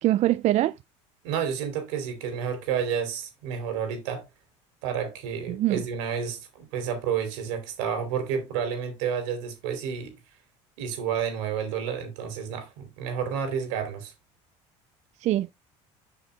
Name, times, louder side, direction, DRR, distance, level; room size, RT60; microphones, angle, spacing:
voice 1, 0.0-0.7 5.5-5.8 15.2-15.5, right 14 dB, 50° right, 0.4 m, -23 dB
voice 2, 1.2-4.2 4.8-10.1 10.8-14.1, right 7 dB, 80° right, 2.9 m, -30 dB
7.4 x 5.9 x 3.3 m
hypercardioid pair, 80°, 15 cm